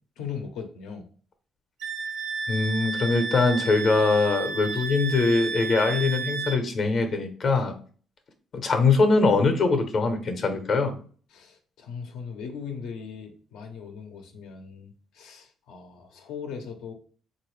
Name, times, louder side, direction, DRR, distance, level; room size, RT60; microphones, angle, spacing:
voice 1, 0.2-1.0 11.3-16.9, left 6 dB, 90° left, 4 dB, 0.7 m, -39 dB
Wind instrument woodwind instrument, 1.8-6.6, right 4 dB, 85° right, 0.7 m, -32 dB
voice 2, 2.5-7.7 8.5-11.0, left 3 dB, 55° left, 6 dB, 0.7 m, -22 dB
3.8 x 2.6 x 3.1 m, 0.43 s
cardioid pair, 90°, 0 cm